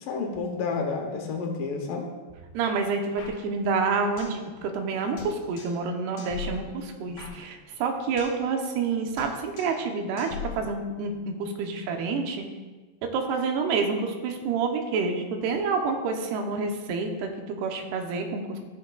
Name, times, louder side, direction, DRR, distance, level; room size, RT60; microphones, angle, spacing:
voice 1, 0.0-2.1, left 4 dB, 70° left, 2 dB, 2.2 m, -30 dB
voice 2, 2.5-12.5 13.1-18.6, right 4 dB, 85° right, 4 dB, 2.8 m, -28 dB
sound 1, 3.2-4.5 4.7-4.8 5.2-5.9 6.2-8.5 8.7-8.9 9.2-9.9 10.2-11.2, left 8 dB, 90° left, 3.4 m, -41 dB
14.5 x 6.4 x 2.3 m, 1.3 s
omnidirectional pair, 4.6 m